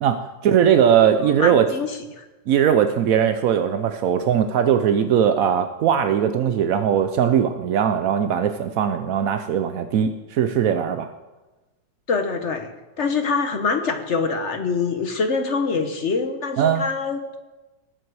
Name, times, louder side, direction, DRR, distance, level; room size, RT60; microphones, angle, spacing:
voice 1, 0.0-1.6 2.5-11.1 16.6-16.8, right 8 dB, 75° right, 8 dB, 0.8 m, -20 dB
voice 2, 1.2-2.3 12.1-12.7 13.0-17.4, left 4 dB, 50° left, 6 dB, 0.9 m, -25 dB
19.0 x 7.8 x 4.7 m, 1.1 s
omnidirectional pair, 2.1 m